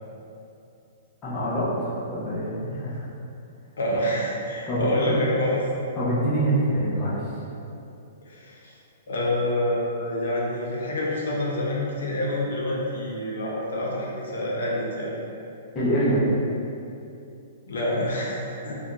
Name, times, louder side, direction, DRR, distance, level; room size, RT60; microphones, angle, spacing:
voice 1, 1.2-3.0 4.7-5.2 6.0-7.3 15.7-16.3, right 1 dB, 15° left, -10 dB, 0.5 m, -25 dB
voice 2, 3.8-5.6 8.2-8.7 9.1-15.2 17.7-18.8, left 1 dB, 85° left, -4 dB, 0.6 m, -27 dB
2.5 x 2.1 x 2.9 m, 2.7 s
hypercardioid pair, 170°, 0 cm